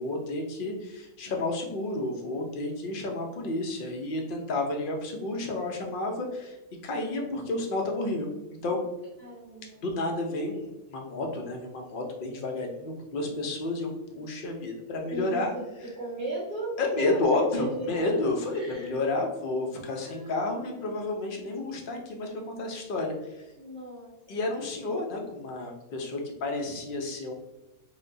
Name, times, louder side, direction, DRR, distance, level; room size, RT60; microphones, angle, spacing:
voice 1, 0.0-6.6 6.8-8.3 8.6-8.8 9.8-15.5 16.8-22.3 22.6-23.5 24.3-27.3, left 2 dB, 55° left, 1 dB, 0.6 m, -31 dB
voice 2, 9.2-9.8 15.1-15.6 15.9-18.2 18.5-18.9 20.0-20.9 23.5-24.4, right 1 dB, 35° right, -12 dB, 1.7 m, -37 dB
4.9 x 2.2 x 2.6 m, 0.99 s
omnidirectional pair, 1.5 m